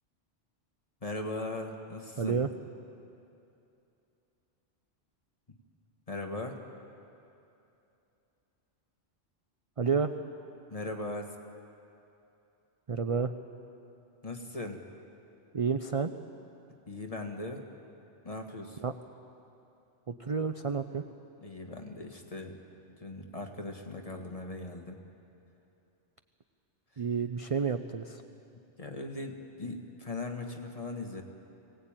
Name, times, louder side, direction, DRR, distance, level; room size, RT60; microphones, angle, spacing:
voice 1, 1.0-2.4 5.5-5.6 6.1-6.6 10.7-11.3 14.2-14.8 16.9-17.6 18.2-18.8 21.4-22.6 23.0-25.0 28.8-31.2, left 2 dB, 30° left, 3 dB, 1.7 m, -39 dB
voice 2, 2.2-2.5 9.8-10.1 12.9-13.3 15.5-16.1 18.8-18.9 20.1-21.0 27.0-28.2, right 5 dB, 40° right, 8 dB, 0.5 m, -30 dB
22.5 x 17.0 x 8.9 m, 2.8 s
omnidirectional pair, 1.2 m